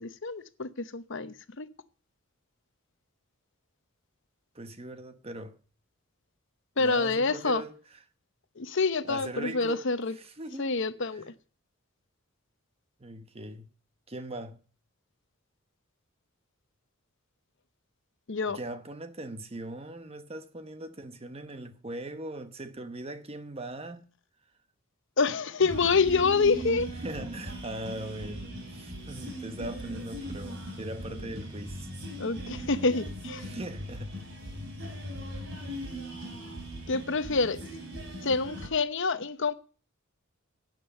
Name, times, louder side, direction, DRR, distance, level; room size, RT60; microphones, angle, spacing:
voice 1, 0.0-1.7 6.8-7.6 8.6-10.1 10.6-11.3 18.3-18.6 25.2-26.9 32.2-33.5 36.9-37.6 38.2-39.5, left 4 dB, 60° left, 0.9 m, -27 dB
voice 2, 4.5-5.6 6.8-7.7 9.0-10.7 11.1-11.2 13.0-13.7 14.1-14.6 18.5-24.1 27.0-31.9 33.4-34.2 35.3-35.5, right 1 dB, 30° right, 1.1 m, -40 dB
sound 1, 25.6-38.7, equal, 60° right, 3.6 m, -39 dB
11.5 x 9.0 x 6.6 m
head